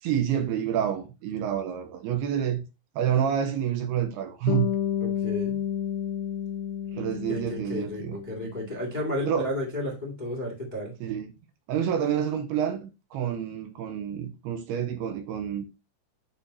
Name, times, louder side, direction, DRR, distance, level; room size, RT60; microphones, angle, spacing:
voice 1, 0.0-2.6 3.0-4.7 6.9-8.2 9.3-9.5 11.0-11.3 11.7-15.7, right 9 dB, 80° right, 2.6 m, -28 dB
Bass guitar, 4.5-8.7, left 9 dB, 80° left, 2.6 m, -31 dB
voice 2, 5.0-5.6 7.3-10.9, left 1 dB, 30° left, 0.7 m, -32 dB
11.0 x 3.9 x 2.7 m
omnidirectional pair, 5.0 m